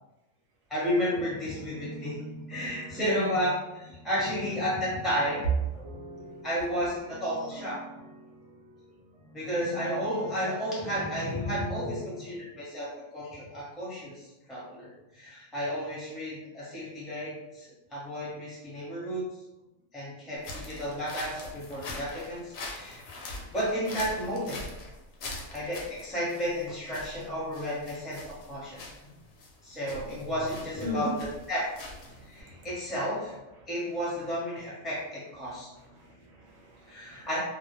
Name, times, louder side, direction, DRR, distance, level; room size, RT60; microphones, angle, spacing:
voice 1, 0.7-2.2 2.5-5.8 6.4-7.8 9.3-12.9 13.1-19.2 19.9-23.0 23.3-24.6 25.5-28.8 29.6-31.2 31.5-31.7 32.3-33.3 33.7-35.7 36.9-37.4, equal, ahead, -7 dB, 0.7 m, -32 dB
sound 1, 0.9-12.4, left 1 dB, 50° right, 0.4 m, -44 dB
voice 2, 3.0-3.3 30.8-31.1 32.1-32.7 33.6-33.7 35.5-37.3, equal, 65° right, -2 dB, 0.8 m, -39 dB
sound 2, 20.4-32.4, left 2 dB, 65° left, 0.7 m, -43 dB
2.2 x 2.0 x 3.0 m, 1.0 s
omnidirectional pair, 1.4 m